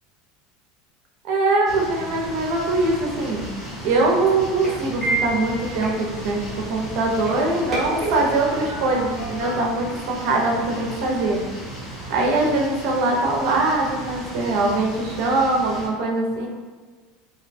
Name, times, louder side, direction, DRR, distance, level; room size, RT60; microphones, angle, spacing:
voice 1, 1.2-3.4 3.8-11.4 12.1-16.5, right 2 dB, 60° right, 0 dB, 0.5 m, -22 dB
sound 1, 1.6-15.9, equal, 25° left, 0.7 m, -36 dB
sound 2, 3.0-10.7, right 2 dB, 10° right, 0.9 m, -33 dB
2.6 x 2.1 x 2.5 m, 1.4 s
supercardioid pair, 155°, 0 cm